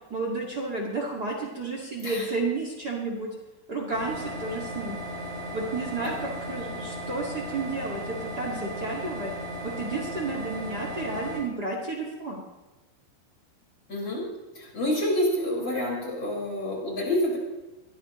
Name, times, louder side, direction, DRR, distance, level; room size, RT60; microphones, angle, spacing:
voice 1, 0.1-3.3 3.7-5.0 5.5-9.3 9.6-12.4, right 3 dB, 90° right, -3 dB, 0.8 m, -32 dB
sound 1, 3.9-11.4, equal, 35° left, 6.6 m, -36 dB
voice 2, 13.9-17.4, left 1 dB, 20° left, -4 dB, 5.2 m, -28 dB
22.5 x 14.5 x 3.1 m, 1.1 s
omnidirectional pair, 5.6 m